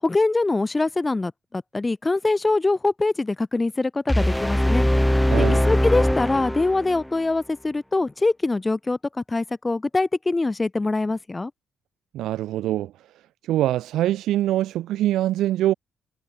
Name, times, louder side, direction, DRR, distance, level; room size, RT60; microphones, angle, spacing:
voice 1, 0.0-4.9 5.4-11.5, left 3 dB, 20° left, 7.7 m, -23 dB
sound 1, 4.1-7.1, left 1 dB, 5° left, 3.4 m, -21 dB
voice 2, 5.3-5.6 12.1-12.9 13.5-15.7, right 13 dB, 85° right, 4.6 m, -23 dB
cardioid pair, 90°, 0 cm